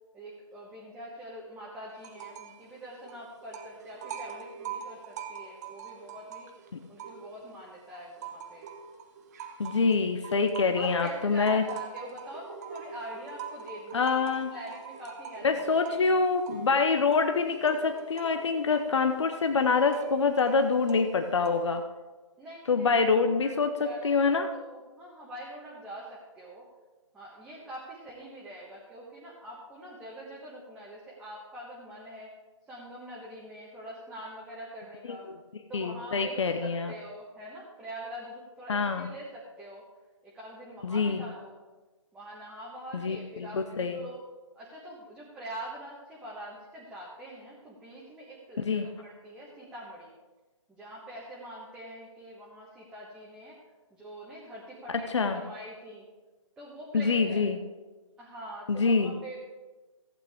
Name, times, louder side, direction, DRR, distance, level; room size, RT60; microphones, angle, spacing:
voice 1, 0.1-6.5 6.9-8.7 10.7-14.2 14.5-16.0 22.4-23.5 23.8-26.7 27.1-32.3 32.7-35.3 35.7-39.8 40.2-41.6 42.1-44.2 44.5-50.1 50.7-53.6 53.9-56.1 56.6-57.5 58.2-59.4, right 1 dB, 5° right, -6 dB, 1.3 m, -44 dB
sound 1, 2.0-2.6 2.9-7.5 7.9-21.8, right 7 dB, 30° right, 1.0 m, -44 dB
voice 2, 9.6-11.6 13.9-14.5 15.4-21.8 22.7-24.5 35.1-35.4 35.7-36.9 38.7-39.1 40.8-41.2 42.9-44.0 48.6-48.9 54.9-55.4 56.9-57.6 58.7-59.1, left 4 dB, 60° left, 7 dB, 0.8 m, -26 dB
15.0 x 8.9 x 3.6 m, 1.2 s
figure-of-eight pair, 135°, 17 cm